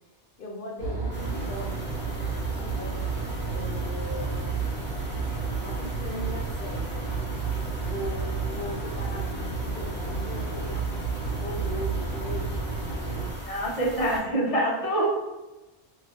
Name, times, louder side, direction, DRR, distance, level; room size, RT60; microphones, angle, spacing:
voice 1, 0.4-1.9 2.5-3.1 3.5-4.4 5.6-7.2 7.8-10.9 11.4-13.2, left 1 dB, 60° left, 0 dB, 0.7 m, -39 dB
sound 1, 0.8-13.3, right 4 dB, 55° right, 1.1 m, -31 dB
sound 2, 1.1-14.2, equal, 10° left, 0.6 m, -40 dB
voice 2, 13.4-15.1, right 1 dB, 35° left, -6 dB, 1.0 m, -25 dB
3.0 x 2.8 x 2.9 m, 1.1 s
omnidirectional pair, 1.2 m